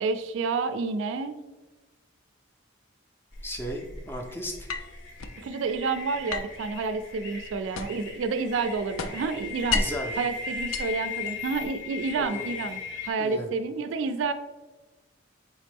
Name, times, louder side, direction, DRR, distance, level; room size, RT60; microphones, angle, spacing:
voice 1, 0.0-1.4 5.4-9.8 10.2-12.8 13.0-14.3, right 4 dB, 70° right, 10 dB, 0.3 m, -29 dB
sound 1, 3.3-13.1, left 4 dB, 60° left, 0.7 m, -38 dB
voice 2, 3.4-4.7 9.7-10.1 12.1-12.4 13.2-13.5, equal, 10° left, 2 dB, 0.3 m, -35 dB
sound 2, 4.7-5.4 6.3-8.2 8.5-10.1 10.6-11.6, left 4 dB, 85° left, 0.4 m, -33 dB
4.1 x 3.5 x 3.4 m, 1.2 s
head